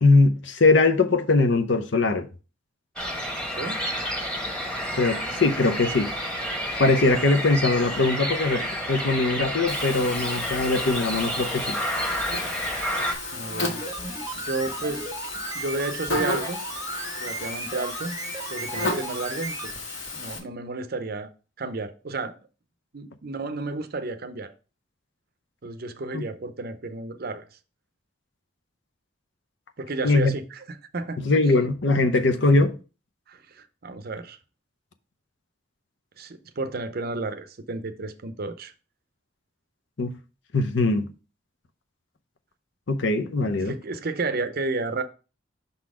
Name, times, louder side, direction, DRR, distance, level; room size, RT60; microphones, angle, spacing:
voice 1, 0.0-2.3 5.0-6.1 6.8-11.8 26.1-26.2 30.0-30.3 31.2-32.8 40.0-40.1 40.5-41.1 42.9-43.7, left 3 dB, 60° left, 0.7 m, -21 dB
sound 1, 3.0-13.1, equal, 5° left, 1.2 m, -30 dB
Buzz, 9.7-20.4, left 2 dB, 80° left, 1.9 m, -34 dB
voice 2, 13.3-13.8 14.3-15.0 15.3-16.6 17.2-18.2 18.5-21.3 21.6-22.3 22.9-24.5 25.6-27.4 29.8-30.6 30.9-31.2 33.3-34.4 36.2-38.7 43.6-45.0, right 3 dB, 50° right, 0.6 m, -32 dB
sound 2, 13.7-19.8 20.1-20.2, right 3 dB, 15° right, 0.8 m, -36 dB
5.7 x 4.0 x 4.8 m
head